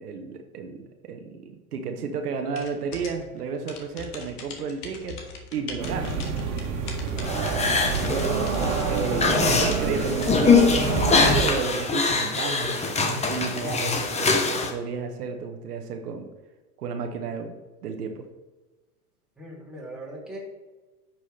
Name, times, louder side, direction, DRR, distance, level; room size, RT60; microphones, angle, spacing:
voice 1, 0.0-5.2 5.5-6.2 7.5-16.3 16.8-17.5 17.8-18.2, right 5 dB, 80° right, 5 dB, 1.2 m, -33 dB
sound 1, 2.6-11.4, left 4 dB, 75° left, 1.8 m, -41 dB
sound 2, 5.8-11.5, right 5 dB, 60° right, 1.8 m, -27 dB
sound 3, 7.2-14.7, left 4 dB, 15° left, 1.0 m, -23 dB
voice 2, 19.4-20.4, right 1 dB, ahead, -5 dB, 2.8 m, -41 dB
9.8 x 6.1 x 3.3 m, 1.2 s
hypercardioid pair, 110°, 45 cm